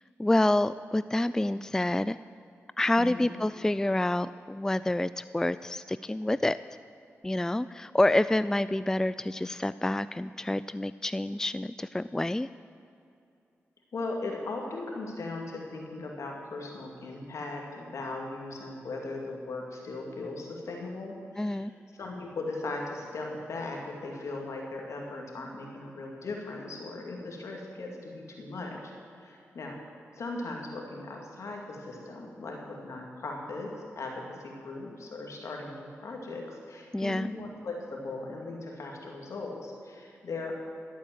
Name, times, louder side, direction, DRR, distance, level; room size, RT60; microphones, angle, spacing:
voice 1, 0.2-2.2 2.8-6.6 7.2-12.5 21.4-21.7 36.9-37.3, left 1 dB, 10° left, 15 dB, 0.3 m, -28 dB
voice 2, 3.0-3.3 13.9-21.7 22.0-28.9 29.2-29.8 30.1-40.5, left 2 dB, 70° left, 0 dB, 2.4 m, -38 dB
12.0 x 8.3 x 7.7 m, 2.6 s
cardioid pair, 45°, 5 cm